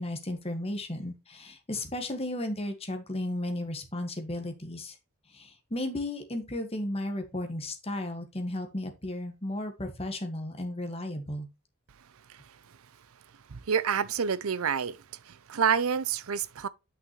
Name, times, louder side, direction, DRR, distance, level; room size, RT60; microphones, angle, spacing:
voice 1, 0.0-5.0 5.3-11.5, left 1 dB, 30° left, 1.7 m, -34 dB
voice 2, 13.5-15.0 15.5-16.7, right 7 dB, 80° right, 0.6 m, -27 dB
8.5 x 6.0 x 3.1 m
head